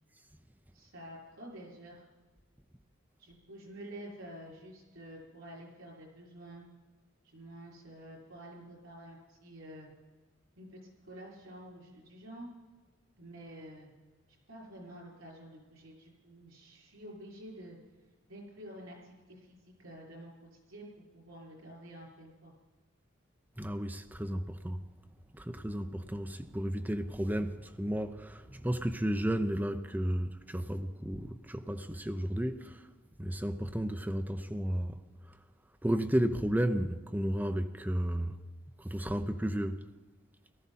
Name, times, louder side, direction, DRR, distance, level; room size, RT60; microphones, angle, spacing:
voice 1, 0.7-2.1 3.2-6.6 7.2-9.9 10.6-12.5 13.2-13.9 14.5-17.8 18.3-22.5, right 1 dB, 85° right, 6.1 m, -49 dB
voice 2, 23.6-24.8 25.3-32.8 33.2-35.0 35.8-38.3 38.8-39.8, equal, 10° right, 0.6 m, -33 dB
18.5 x 13.5 x 4.2 m
head